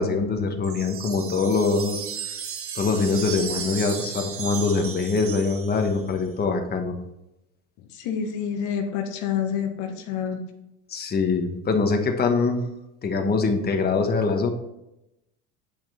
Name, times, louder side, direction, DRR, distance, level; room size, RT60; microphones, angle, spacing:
voice 1, 0.0-2.0 2.7-7.0 10.9-12.6 13.0-14.5, left 4 dB, 30° left, 4 dB, 1.3 m, -23 dB
sound 1, 0.6-6.1, right 7 dB, 45° right, 1.1 m, -35 dB
voice 2, 7.9-10.4, left 7 dB, 65° left, 5 dB, 1.3 m, -28 dB
8.7 x 6.0 x 4.2 m, 0.90 s
hypercardioid pair, 80°, 32 cm